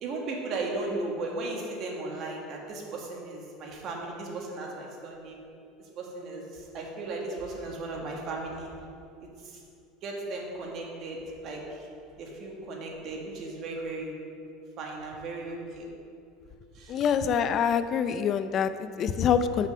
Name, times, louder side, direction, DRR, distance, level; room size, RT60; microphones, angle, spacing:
voice 1, 0.0-5.4 5.8-8.7 9.4-9.6 10.0-11.9 12.2-14.1 14.8-15.9 16.7-17.0, right 2 dB, 45° right, -1 dB, 1.5 m, -36 dB
voice 2, 16.9-19.7, left 7 dB, 40° left, 11 dB, 0.4 m, -25 dB
6.6 x 5.2 x 6.2 m, 2.5 s
supercardioid pair, 140°, 0 cm